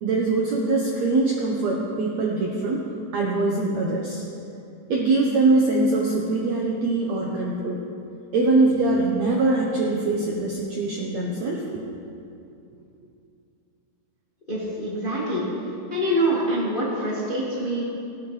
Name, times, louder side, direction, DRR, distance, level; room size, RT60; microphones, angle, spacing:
voice 1, 0.0-2.8 3.1-4.2 4.9-7.8 8.3-11.6, right 3 dB, 70° right, -2 dB, 1.7 m, -22 dB
voice 2, 14.5-15.4 15.9-17.8, right 1 dB, 25° left, -6 dB, 1.0 m, -25 dB
18.0 x 10.0 x 3.2 m, 2.6 s
omnidirectional pair, 4.4 m